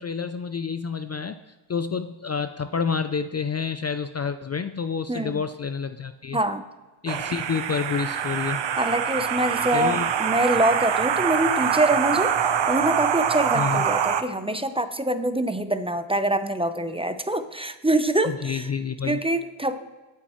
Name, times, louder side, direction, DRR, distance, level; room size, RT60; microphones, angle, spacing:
voice 1, 0.0-1.4 1.7-6.4 7.0-8.6 9.7-10.1 13.5-13.8 18.3-19.2, left 6 dB, 30° left, 10 dB, 0.5 m, -28 dB
voice 2, 5.1-5.4 6.3-6.6 8.8-12.3 12.7-18.7 19.0-19.8, right 1 dB, 10° right, 10 dB, 0.7 m, -25 dB
sound 1, 7.1-14.2, right 8 dB, 60° right, 0.9 m, -24 dB
23.0 x 8.3 x 3.1 m, 1.2 s
cardioid pair, 85°, 49 cm